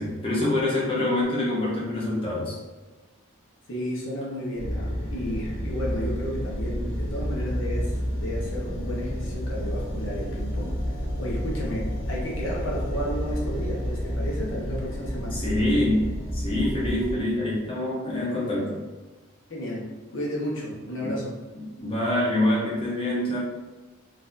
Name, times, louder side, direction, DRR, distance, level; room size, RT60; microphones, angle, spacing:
voice 1, 0.0-2.6 15.3-16.0 16.3-18.8 21.0-21.1 21.8-23.4, left 1 dB, 25° left, -6 dB, 0.7 m, -25 dB
voice 2, 3.7-15.4 19.5-19.9 20.1-21.3, equal, 70° left, -4 dB, 0.9 m, -33 dB
sound 1, 4.6-17.1, equal, 90° left, 1.4 m, -30 dB
4.0 x 2.7 x 2.5 m, 1.2 s
head